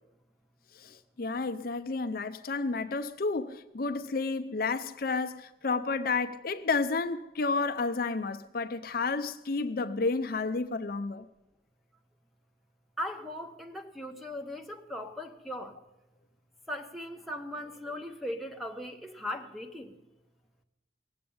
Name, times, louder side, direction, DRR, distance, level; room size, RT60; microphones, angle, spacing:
voice 1, 0.8-11.2, left 4 dB, 55° left, 0.6 m, -31 dB
voice 2, 13.0-15.8 16.7-20.0, left 1 dB, ahead, 1.1 m, -38 dB
18.0 x 7.9 x 8.7 m
head